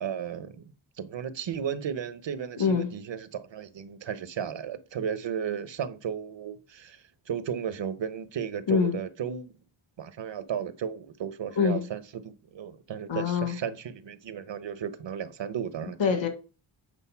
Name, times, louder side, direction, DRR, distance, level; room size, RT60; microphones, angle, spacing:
voice 1, 0.0-9.5 10.0-16.0, right 8 dB, 65° right, 1.0 m, -34 dB
voice 2, 2.6-2.9 8.7-9.0 11.6-11.9 13.1-13.6 16.0-16.3, left 6 dB, 70° left, 1.7 m, -24 dB
8.1 x 3.9 x 5.7 m
wide cardioid pair, 135°, 47 cm